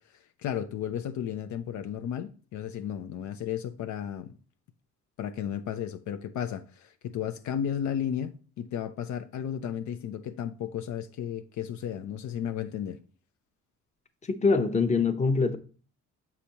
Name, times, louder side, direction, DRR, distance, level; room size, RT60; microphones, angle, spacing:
voice 1, 0.4-4.4 5.2-13.0, left 9 dB, 75° left, 0.6 m, -34 dB
voice 2, 14.3-15.6, left 4 dB, 25° left, 0.8 m, -24 dB
7.1 x 4.9 x 2.8 m
cardioid pair, 90°, 30 cm